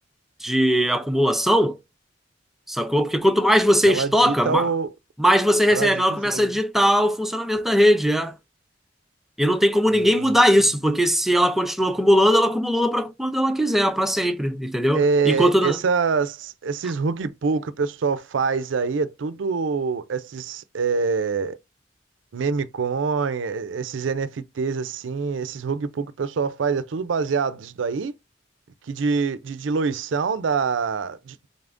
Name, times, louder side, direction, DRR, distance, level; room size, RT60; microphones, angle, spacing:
voice 1, 0.4-1.8 2.7-4.7 5.2-8.3 9.4-15.8, equal, ahead, 0.4 m, -20 dB
voice 2, 3.9-4.9 5.7-6.5 9.9-10.4 14.9-21.6 22.3-28.1 28.9-31.5, right 5 dB, 90° right, 0.4 m, -25 dB
3.9 x 3.4 x 2.5 m
head